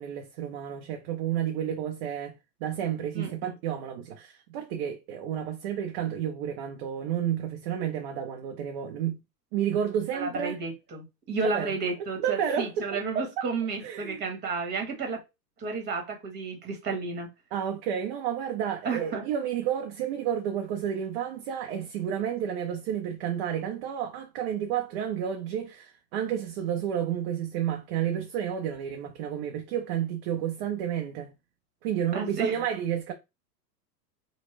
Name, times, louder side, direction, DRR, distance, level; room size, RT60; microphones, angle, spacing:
voice 1, 0.0-2.3 2.6-9.2 9.5-10.6 11.4-11.7 12.2-13.4 13.8-14.2 17.5-31.3 31.8-33.1, right 9 dB, 40° right, 0.5 m, -31 dB
voice 2, 3.1-3.5 10.1-15.2 15.6-17.3 18.8-19.3 32.1-32.6, right 4 dB, 20° right, 1.1 m, -32 dB
3.0 x 2.2 x 3.2 m
hypercardioid pair, 120°, 50 cm